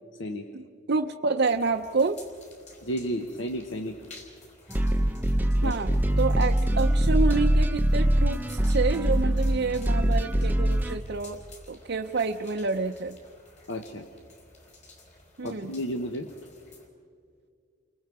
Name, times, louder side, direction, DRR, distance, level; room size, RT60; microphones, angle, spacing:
voice 1, 0.9-2.2 5.6-5.9 6.2-11.4 11.7-13.2 15.4-15.7, right 4 dB, 55° right, 2 dB, 0.6 m, -28 dB
sound 1, 1.4-16.9, left 2 dB, 35° left, 4.0 m, -52 dB
voice 2, 2.8-4.0 5.6-5.8 13.7-14.1 15.4-16.3, equal, 65° left, 5 dB, 1.1 m, -32 dB
sound 2, 4.7-11.0, right 1 dB, 10° right, 0.7 m, -23 dB
29.5 x 24.0 x 4.8 m, 2.2 s
head